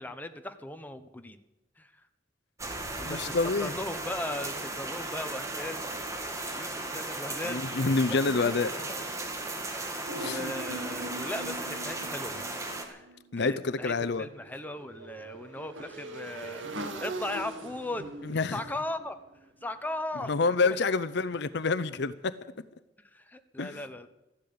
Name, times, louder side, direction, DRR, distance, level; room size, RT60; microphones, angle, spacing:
voice 1, 0.0-1.4 1.8-1.9 3.0-3.3 3.6-5.8 6.3-8.6 8.9-9.0 9.7-12.4 12.9-13.1 13.4-18.1 18.5-19.2 19.6-20.8 23.1-24.1, left 1 dB, 10° left, 8 dB, 1.0 m, -38 dB
sound 1, 2.6-12.9, right 2 dB, 15° right, 2.1 m, -36 dB
voice 2, 3.0-3.7 7.4-8.7 10.1-10.5 13.3-14.3 18.2-18.6 20.3-22.3 23.6-23.8, left 4 dB, 65° left, 15 dB, 0.6 m, -27 dB
sound 2, 10.1-13.4 13.6-13.7, right 2 dB, 60° right, 1.8 m, -41 dB
Motorcycle / Engine, 13.8-19.9, right 2 dB, 90° right, 2.1 m, -42 dB
14.0 x 11.5 x 8.7 m, 0.96 s
head